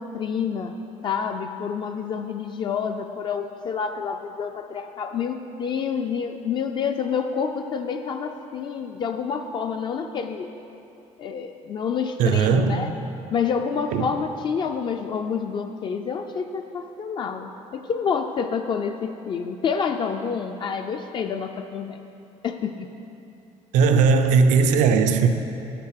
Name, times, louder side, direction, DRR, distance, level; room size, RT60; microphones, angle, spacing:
voice 1, 0.0-10.5 11.2-12.9 13.3-22.0 22.4-22.9, left 6 dB, 40° left, 5 dB, 0.4 m, -28 dB
voice 2, 12.2-12.9 13.9-14.0 23.7-25.3, right 5 dB, 80° right, 7 dB, 0.5 m, -18 dB
7.7 x 5.9 x 6.4 m, 2.8 s
cardioid pair, 150°, 13 cm